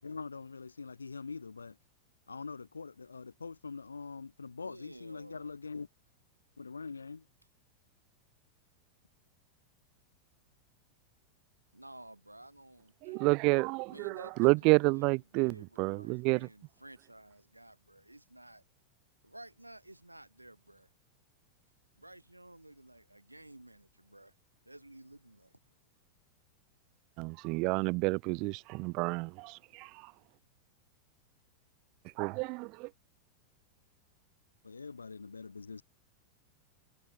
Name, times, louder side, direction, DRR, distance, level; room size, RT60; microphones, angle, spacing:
voice 1, 0.0-1.8 2.3-5.9 6.6-7.2 34.6-35.8, left 4 dB, 75° left, 4.8 m, -43 dB
voice 2, 4.6-5.5 11.7-13.3 13.9-15.1 15.3-18.6 19.2-20.9 22.0-24.3 24.7-25.6, right 1 dB, 85° right, 5.7 m, -53 dB
voice 3, 13.0-16.5 27.2-29.9 32.2-32.9, right 28 dB, 45° right, 1.1 m, -29 dB
figure-of-eight pair, 90°, 0 cm